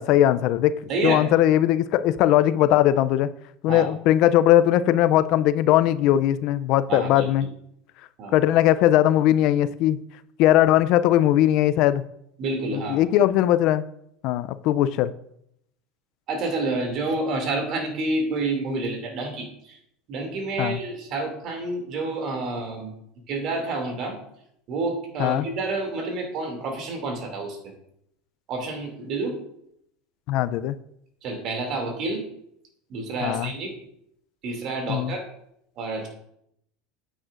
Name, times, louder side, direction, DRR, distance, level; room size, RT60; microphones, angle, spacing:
voice 1, 0.0-3.3 3.6-7.5 8.3-10.0 10.4-12.0 12.7-13.8 14.2-15.1 20.6-20.8 25.2-25.5 30.3-30.8 33.2-33.5 34.9-35.1, left 12 dB, 60° left, 15 dB, 0.4 m, -19 dB
voice 2, 0.9-1.3 3.7-3.9 6.9-7.3 8.2-8.4 12.4-13.0 16.3-19.8 20.1-22.9 23.3-24.2 24.7-27.7 28.5-29.4 31.2-32.2 32.9-33.7 34.4-35.2 35.8-36.1, right 2 dB, 50° right, 3 dB, 2.5 m, -29 dB
8.9 x 8.8 x 2.5 m, 0.74 s
supercardioid pair, 105°, 0 cm